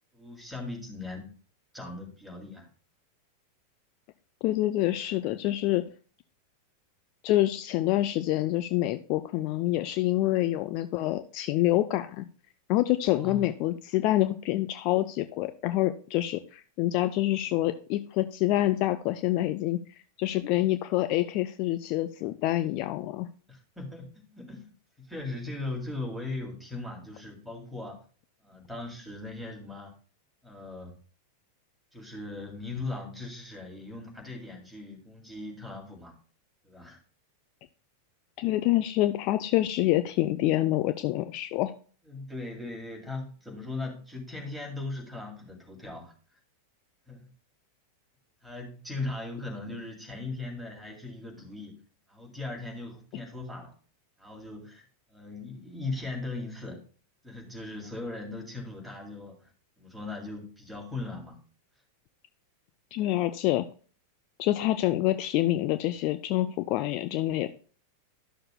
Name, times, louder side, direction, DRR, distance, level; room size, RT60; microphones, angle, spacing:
voice 1, 0.1-1.3 1.7-2.7 13.2-13.4 23.5-24.7 25.0-28.0 28.4-29.9 30.4-30.9 31.9-36.1 36.6-37.0 42.1-46.1 47.1-47.3 48.4-51.8 52.1-53.7 54.2-54.8 55.1-56.8 57.2-59.5 59.8-61.4, left 2 dB, ahead, 0 dB, 2.4 m, -39 dB
voice 2, 4.4-5.8 7.2-12.3 12.7-19.8 20.2-23.3 38.4-41.7 62.9-63.7 64.4-67.5, left 15 dB, 45° left, 10 dB, 0.4 m, -26 dB
12.0 x 6.5 x 2.2 m, 0.40 s
figure-of-eight pair, 90°, 0 cm